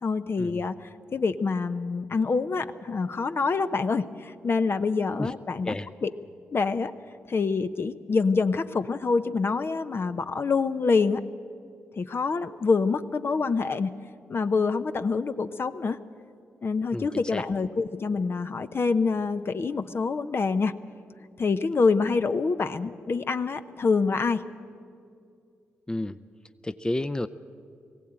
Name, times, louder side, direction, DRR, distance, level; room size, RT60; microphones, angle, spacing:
voice 1, 0.0-0.7 1.1-5.8 6.0-6.1 6.5-6.9 7.3-11.2 12.0-13.9 14.3-16.0 16.6-20.7 21.4-24.4, left 4 dB, 50° left, 10 dB, 0.8 m, -26 dB
voice 2, 16.9-17.4 25.9-26.2 26.6-27.3, left 1 dB, 15° left, 12 dB, 0.6 m, -31 dB
19.5 x 16.0 x 8.8 m, 2.4 s
supercardioid pair, 45°, 5 cm